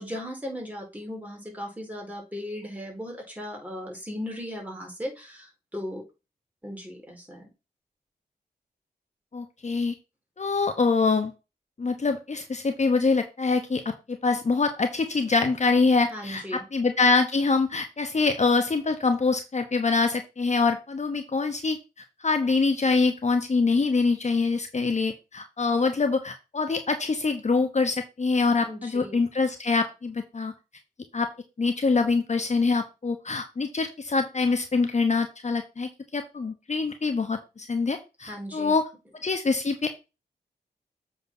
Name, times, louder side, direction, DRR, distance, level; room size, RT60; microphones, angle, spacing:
voice 1, 0.0-6.0 6.6-7.5 16.1-16.6 28.6-29.2 38.2-38.7, equal, 10° right, 0 dB, 4.3 m, -37 dB
voice 2, 9.3-9.9 10.4-11.3 11.8-21.8 22.2-30.5 31.1-31.3 31.6-38.8 39.2-39.9, left 4 dB, 45° left, 7 dB, 1.0 m, -25 dB
7.8 x 4.2 x 5.4 m, 0.28 s
cardioid pair, 50°, 17 cm